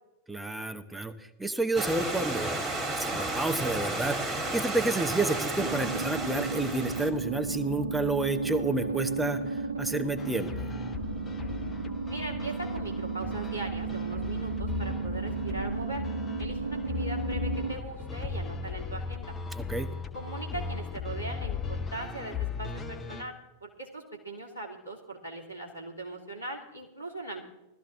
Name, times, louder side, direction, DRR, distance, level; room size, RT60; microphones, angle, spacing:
voice 1, 0.3-2.6 2.9-10.7 19.5-19.9, right 2 dB, 5° right, 9 dB, 0.9 m, -30 dB
Stream / Liquid, 1.7-7.1, right 2 dB, 25° right, 2.1 m, -32 dB
sound 1, 5.6-17.7, right 4 dB, 70° right, 0.9 m, -34 dB
sound 2, 10.2-23.2, left 5 dB, 15° left, 1.2 m, -37 dB
voice 2, 12.1-16.0 16.4-19.3 20.1-23.3 23.6-27.4, right 2 dB, 85° left, 0 dB, 2.7 m, -40 dB
16.0 x 13.5 x 3.7 m, 0.98 s
figure-of-eight pair, 90°, 0 cm